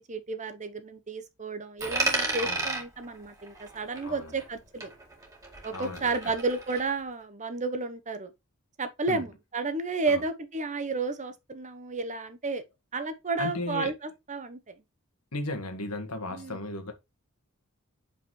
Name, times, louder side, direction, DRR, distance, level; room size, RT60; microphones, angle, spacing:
voice 1, 0.1-4.9 5.6-8.3 8.8-12.6 12.9-13.9 14.3-14.7 16.3-16.6, right 3 dB, 35° right, 0.9 m, -32 dB
Coin (dropping), 1.8-4.6 4.8-6.8, right 2 dB, 15° right, 2.1 m, -33 dB
voice 2, 5.7-6.3 9.1-9.2 10.1-10.2 13.4-13.9 15.3-16.9, left 2 dB, 90° left, 1.6 m, -35 dB
6.7 x 5.3 x 3.2 m
head